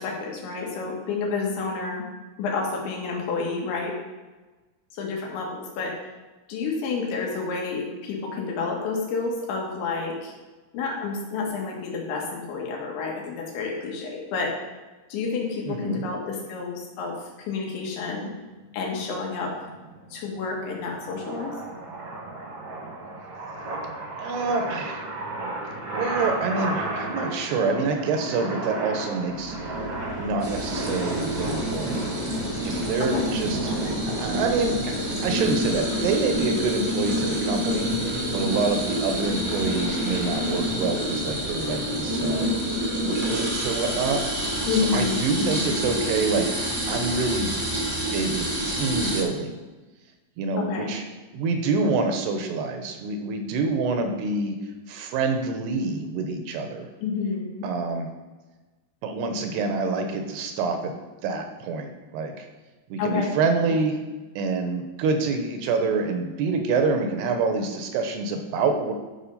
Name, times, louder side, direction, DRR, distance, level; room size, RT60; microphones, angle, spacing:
voice 1, 0.0-2.1 2.4-4.0 4.9-5.9 6.5-10.3 10.7-14.5 15.1-17.2 17.5-18.3 18.7-19.5 20.1-21.5 33.0-33.3 33.8-34.0 44.7-45.7 50.6-50.9 57.0-57.7 63.0-63.3, left 4 dB, 85° left, -1 dB, 4.1 m, -29 dB
voice 2, 15.7-16.0 24.2-25.1 25.9-29.6 30.2-32.1 32.7-33.9 34.2-35.0 35.2-38.0 38.3-42.5 43.0-44.2 44.7-46.6 46.9-47.5 48.0-49.6 50.4-51.0 51.3-54.6 54.9-56.9 57.6-58.1 59.0-61.0 61.2-62.5 62.9-64.0 64.4-68.9, right 4 dB, 75° right, 5 dB, 2.7 m, -26 dB
sound 1, 19.2-34.5, right 2 dB, 50° right, 1.5 m, -33 dB
Vehicle, 29.3-49.1, right 1 dB, 50° left, 2.4 m, -41 dB
sound 2, 30.4-49.2, equal, 30° right, 1.1 m, -28 dB
11.5 x 5.5 x 5.5 m, 1.2 s
omnidirectional pair, 5.2 m